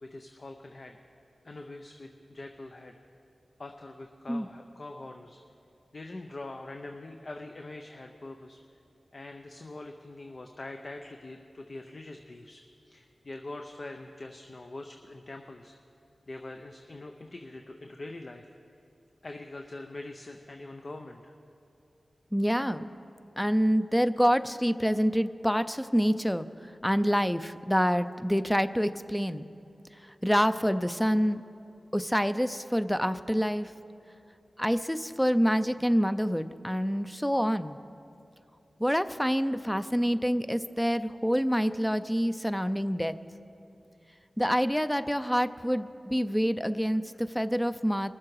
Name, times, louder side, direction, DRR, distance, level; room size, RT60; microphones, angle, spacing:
voice 1, 0.0-1.0 1.4-2.9 3.6-5.4 5.9-8.6 9.1-12.6 12.9-15.7 16.3-18.5 19.2-21.3, left 2 dB, 55° left, 4 dB, 0.7 m, -43 dB
voice 2, 22.3-22.9 23.4-26.5 26.8-29.5 30.2-31.4 31.9-33.7 34.6-37.8 38.8-43.2 44.4-48.2, equal, 5° left, 11 dB, 0.5 m, -27 dB
21.5 x 7.4 x 4.7 m, 2.8 s
cardioid pair, 45°, 0 cm